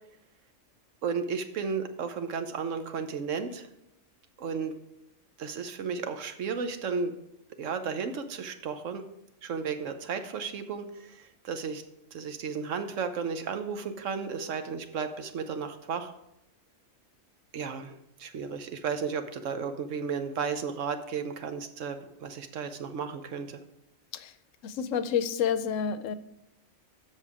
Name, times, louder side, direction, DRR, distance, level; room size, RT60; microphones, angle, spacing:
voice 1, 1.0-3.7 4.4-4.7 5.4-7.1 7.6-9.0 9.4-11.8 12.1-16.1 17.5-23.6, right 5 dB, 75° right, 8 dB, 1.1 m, -34 dB
voice 2, 24.6-26.1, left 7 dB, 80° left, 13 dB, 1.0 m, -29 dB
7.8 x 6.5 x 4.8 m, 0.82 s
omnidirectional pair, 1.3 m